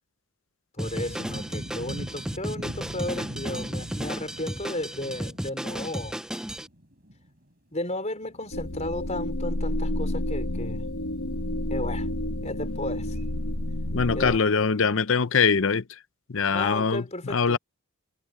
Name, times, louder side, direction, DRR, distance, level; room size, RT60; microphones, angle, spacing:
voice 1, 0.8-6.2 7.7-10.9 11.7-12.1 12.4-13.3 14.1-14.4 16.5-17.6, left 1 dB, 30° left, 4.9 m, -34 dB
Drum kit, 0.8-6.7, equal, 5° right, 0.3 m, -34 dB
sound 1, 0.8-8.9 9.2-9.3 10.5-10.6 10.8-10.9 13.1-13.2 15.0-15.1, equal, 45° right, 5.8 m, -41 dB
sound 2, 8.5-14.4, left 1 dB, 80° left, 2.0 m, -30 dB
voice 2, 13.9-15.8 16.3-17.6, left 5 dB, 60° left, 0.7 m, -23 dB
head